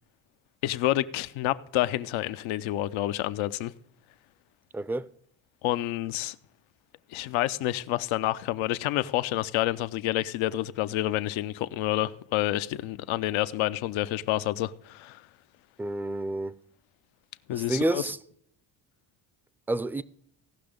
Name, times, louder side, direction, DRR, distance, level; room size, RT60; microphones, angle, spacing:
voice 1, 0.6-3.7 5.6-6.4 7.1-15.2 17.5-18.1, left 15 dB, 90° left, 0.7 m, -28 dB
voice 2, 4.7-5.1 15.8-16.5 17.5-18.2 19.7-20.0, right 2 dB, 5° right, 0.4 m, -29 dB
16.5 x 6.0 x 5.1 m
cardioid pair, 90°, 46 cm